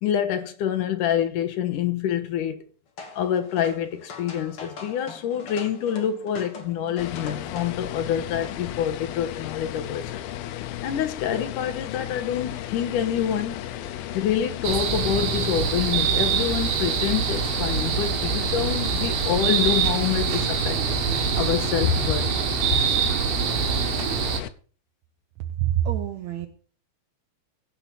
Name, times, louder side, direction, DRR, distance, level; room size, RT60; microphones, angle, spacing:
voice 1, 0.0-2.6 3.2-10.2 10.8-13.6 14.1-20.8 21.3-22.4, left 9 dB, 70° left, 2.5 m, -26 dB
sound 1, 3.0-9.1, left 4 dB, 40° left, 2.7 m, -42 dB
sound 2, 7.0-24.5, left 12 dB, 90° left, 2.7 m, -35 dB
sound 3, 14.6-24.4, right 7 dB, 90° right, 3.3 m, -25 dB
voice 2, 25.6-26.5, right 11 dB, 70° right, 1.7 m, -25 dB
16.5 x 5.6 x 7.4 m
omnidirectional pair, 4.1 m